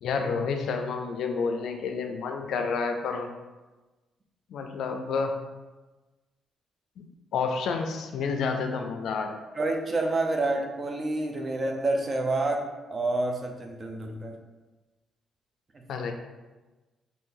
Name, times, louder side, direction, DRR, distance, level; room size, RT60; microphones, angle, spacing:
voice 1, 0.0-3.3 4.5-5.4 7.0-7.1 7.3-9.4 15.9-16.1, left 5 dB, 75° left, 5 dB, 0.4 m, -29 dB
voice 2, 9.5-14.4, right 2 dB, 35° right, 3 dB, 0.5 m, -28 dB
2.6 x 2.6 x 3.8 m, 1.2 s
cardioid pair, 90°, 0 cm